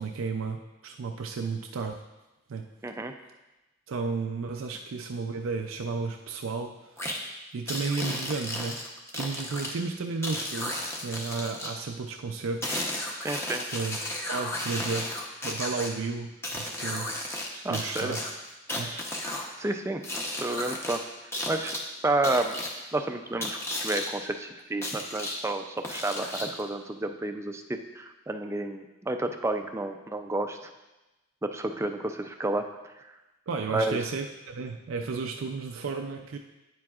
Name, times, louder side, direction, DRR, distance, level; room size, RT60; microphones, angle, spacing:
voice 1, 0.0-2.0 2.5-2.6 3.9-7.0 7.5-8.8 9.1-12.8 13.7-14.0 14.3-15.1 15.4-17.1 17.5-18.2 18.8-19.0 33.5-36.4, right 4 dB, 80° right, 4 dB, 0.5 m, -33 dB
voice 2, 2.8-3.1 13.2-13.6 17.6-18.2 18.9-19.1 19.6-20.0 20.3-21.0 21.5-21.8 22.0-22.5 22.9-30.7 31.4-32.7 33.0-33.1 33.7-34.0, right 2 dB, 15° right, 6 dB, 0.4 m, -30 dB
sound 1, 7.0-7.2 7.7-9.7 10.2-11.7 12.6-15.9 16.4-17.5 17.7-19.5 20.0-21.0 21.3-21.8 22.2-22.7 23.4-24.1 24.8-25.4 25.8-26.6, left 1 dB, 15° left, 0.8 m, -34 dB
9.4 x 7.5 x 2.4 m, 1.0 s
head